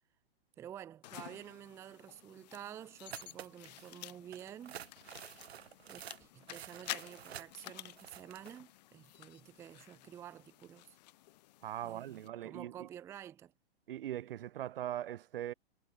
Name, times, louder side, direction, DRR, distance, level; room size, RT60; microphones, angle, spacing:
voice 1, 0.6-4.8 5.9-11.0 11.8-13.5, right 10 dB, 10° right, 0.5 m, -50 dB
sound 1, 1.0-12.3, left 17 dB, 40° left, 1.0 m, -51 dB
sound 2, 3.1-3.9 4.3-8.6, right 10 dB, 80° right, 1.5 m, -50 dB
voice 2, 11.6-12.9 13.9-15.5, right 12 dB, 60° right, 0.9 m, -40 dB
hypercardioid pair, 150°, 31 cm